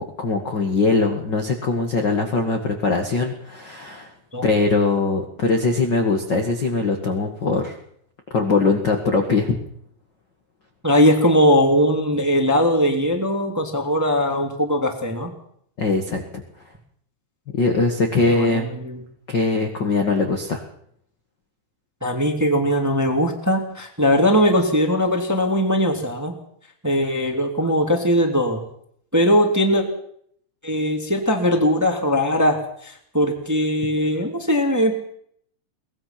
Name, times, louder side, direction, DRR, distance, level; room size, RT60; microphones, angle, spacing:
voice 1, 0.0-4.1 4.4-7.8 8.3-9.6 15.8-16.2 17.5-18.7 19.3-20.6, left 3 dB, 45° left, 3 dB, 1.5 m, -21 dB
voice 2, 10.8-15.3 18.2-19.0 22.0-26.3 26.8-28.6 29.1-29.8 30.6-32.6 32.8-35.0, equal, 5° right, 3 dB, 1.9 m, -20 dB
23.0 x 19.5 x 5.9 m, 0.67 s
omnidirectional pair, 4.7 m